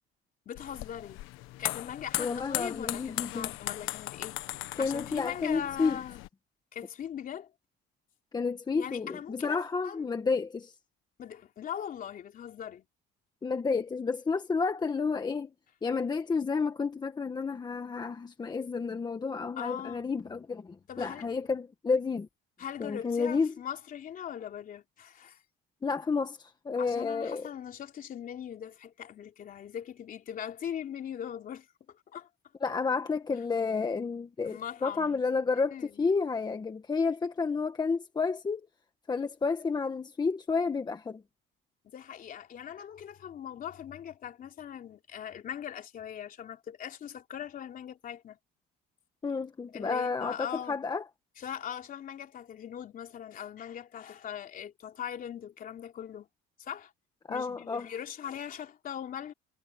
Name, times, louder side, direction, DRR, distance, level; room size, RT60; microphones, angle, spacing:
voice 1, 0.4-1.2 1.6-4.4 4.8-6.2 6.7-7.5 8.8-9.6 9.8-10.0 11.2-12.8 19.6-20.0 20.9-21.3 22.6-25.4 26.8-32.3 34.4-35.2 35.5-35.9 41.9-48.4 49.7-50.8 51.4-56.3 56.6-56.9 57.3-59.3, left 9 dB, 45° left, 3.2 m, -40 dB
sound 1, 0.6-6.3, left 18 dB, 85° left, 1.3 m, -38 dB
voice 2, 2.2-3.5 4.8-6.0 8.3-10.8 13.4-15.5 15.8-22.3 22.8-23.5 25.8-27.5 32.6-38.7 39.1-41.2 49.2-51.0 57.3-57.9, left 4 dB, 20° left, 1.4 m, -31 dB
cardioid pair, 135°, 20 cm